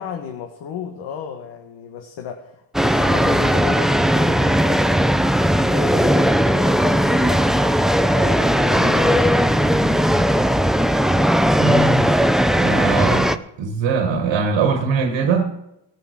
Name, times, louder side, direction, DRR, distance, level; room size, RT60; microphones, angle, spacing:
voice 1, 0.0-4.9 5.4-7.5 8.2-10.4, left 8 dB, 80° left, 1.6 m, -33 dB
sound 1, 2.7-13.4, equal, ahead, 0.8 m, -17 dB
voice 2, 11.6-12.1 12.5-15.5, right 5 dB, 80° right, 1.6 m, -21 dB
18.5 x 6.7 x 6.4 m
supercardioid pair, 60°, 44 cm